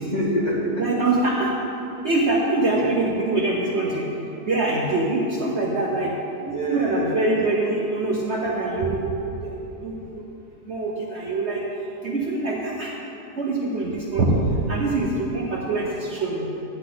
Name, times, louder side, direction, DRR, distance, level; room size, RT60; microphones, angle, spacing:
voice 1, 0.0-0.9 2.6-2.9 6.4-7.3, right 1 dB, 25° left, -5 dB, 1.7 m, -26 dB
voice 2, 0.8-1.5 2.0-4.1 4.5-6.1 6.7-10.2 10.7-11.6 12.0-12.9 13.4-16.5, right 2 dB, 50° right, -3 dB, 1.1 m, -24 dB
12.0 x 9.2 x 3.9 m, 2.9 s
omnidirectional pair, 1.7 m